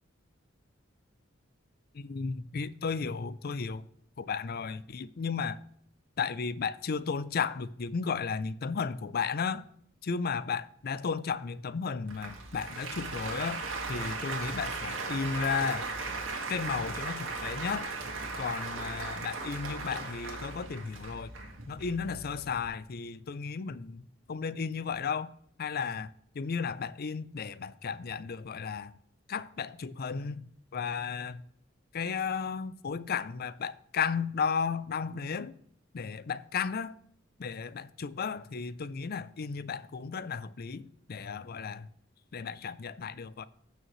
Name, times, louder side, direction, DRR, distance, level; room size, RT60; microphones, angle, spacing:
voice 1, 1.9-3.9 4.2-5.6 6.2-9.6 10.0-13.6 13.9-15.9 16.5-17.9 18.4-21.3 21.7-25.3 25.6-26.1 26.3-28.9 29.3-30.4 30.7-31.4 31.9-35.5 35.9-36.9 37.4-41.9 42.3-43.4, left 5 dB, 50° left, 0.5 m, -34 dB
Applause, 12.1-22.7, right 3 dB, 80° right, 2.0 m, -37 dB
15.5 x 6.3 x 3.1 m
head